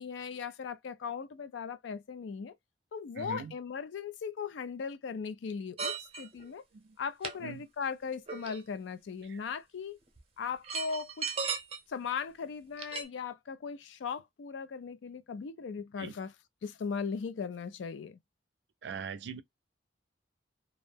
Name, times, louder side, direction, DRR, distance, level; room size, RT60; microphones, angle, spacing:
voice 1, 0.0-2.5 2.9-6.6 7.0-10.0 10.4-11.3 11.9-16.3 16.6-18.2, left 6 dB, 85° left, 0.4 m, -38 dB
voice 2, 3.2-3.6 6.7-7.0 7.4-7.7 9.2-9.4 16.0-16.2 18.8-19.4, right 5 dB, 65° right, 0.4 m, -42 dB
sound 1, 5.8-6.4 7.2-7.3 8.3-8.8 10.2-10.3 10.6-11.8 12.7-13.0, right 5 dB, 35° right, 0.6 m, -36 dB
2.4 x 2.0 x 3.2 m
head